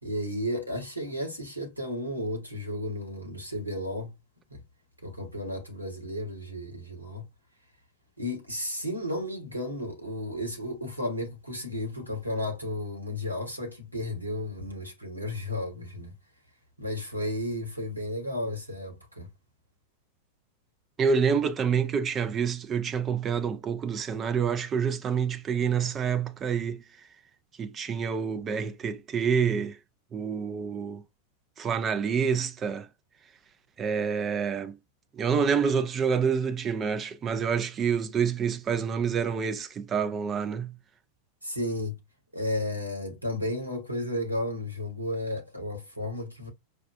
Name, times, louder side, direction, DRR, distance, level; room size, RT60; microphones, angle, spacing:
voice 1, 0.0-4.1 4.5-4.6 5.0-7.3 8.2-16.1 16.8-19.3 41.4-42.0 42.3-46.5, left 1 dB, 90° right, 1.2 m, -33 dB
voice 2, 21.0-26.8 27.6-29.8 30.1-31.0 31.6-32.9 33.8-34.8 35.2-40.8, right 6 dB, 25° right, 0.4 m, -27 dB
4.8 x 2.1 x 2.5 m
figure-of-eight pair, 90°, 0 cm